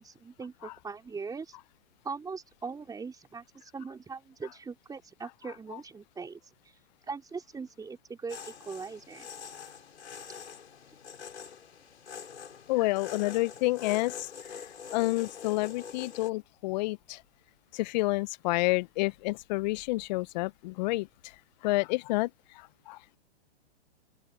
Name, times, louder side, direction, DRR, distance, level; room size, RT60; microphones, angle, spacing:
voice 1, 0.0-1.6 2.0-3.4 3.7-6.4 7.1-9.3, right 5 dB, 10° right, 4.3 m, -40 dB
sound 1, 8.3-16.3, left 7 dB, 80° left, 6.7 m, -45 dB
voice 2, 12.7-14.3 14.9-17.2 17.7-21.3 21.6-23.2, left 21 dB, 40° left, 0.8 m, -29 dB
open air
hypercardioid pair, 125°, 33 cm